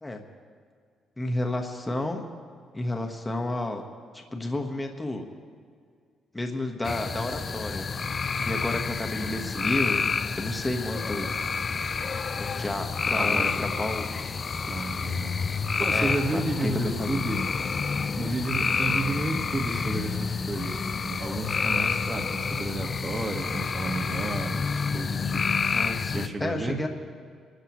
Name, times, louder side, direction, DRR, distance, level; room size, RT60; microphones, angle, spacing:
voice 1, 1.2-2.2 2.7-3.8 4.1-5.3 6.3-7.9 8.4-10.1 10.4-11.3 12.4-14.1 15.9-17.2 25.7-26.9, left 1 dB, 15° left, 3 dB, 1.3 m, -31 dB
sound 1, 6.8-26.3, left 5 dB, 40° left, 0.5 m, -29 dB
voice 2, 9.2-9.5 13.1-13.6 14.7-17.5 18.2-24.6 24.9-25.4 26.1-26.8, right 2 dB, 30° right, 4 dB, 1.7 m, -32 dB
25.5 x 13.0 x 3.2 m, 2.1 s
cardioid pair, 90°, 0 cm